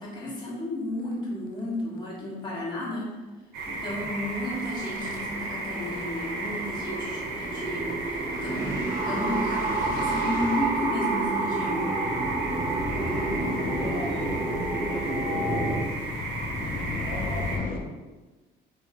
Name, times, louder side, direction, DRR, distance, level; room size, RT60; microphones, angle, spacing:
voice 1, 0.0-3.1 3.7-11.9, left 1 dB, 25° left, -6 dB, 1.2 m, -33 dB
sound 1, 1.1-1.2 1.6-1.7 2.0-2.2 2.5-2.6 3.9-17.8, left 4 dB, 55° left, 0.5 m, -37 dB
sound 2, 3.5-17.6, right 3 dB, 80° right, 0.8 m, -35 dB
voice 2, 4.0-4.3 13.6-16.0 16.6-18.0, left 2 dB, 75° left, -4 dB, 0.9 m, -40 dB
sound 3, 6.1-15.9, right 3 dB, 35° right, 0.4 m, -29 dB
3.1 x 2.6 x 3.5 m, 1.2 s
cardioid pair, 110°, 17 cm